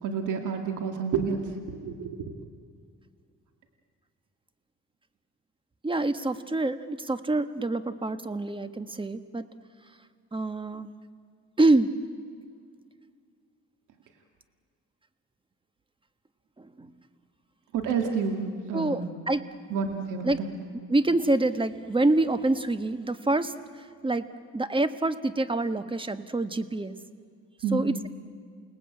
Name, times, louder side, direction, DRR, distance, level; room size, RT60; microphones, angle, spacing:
voice 1, 0.0-2.3 17.7-19.1 19.7-20.5 27.6-27.9, right 5 dB, 85° right, 4 dB, 2.4 m, -30 dB
voice 2, 5.8-9.4 10.3-10.9 11.6-11.9 16.6-16.9 18.7-19.4 20.2-20.4 20.9-24.3 24.5-26.9 27.7-28.1, right 2 dB, 15° right, 11 dB, 1.4 m, -26 dB
29.0 x 19.0 x 8.9 m, 2.2 s
cardioid pair, 90°, 30 cm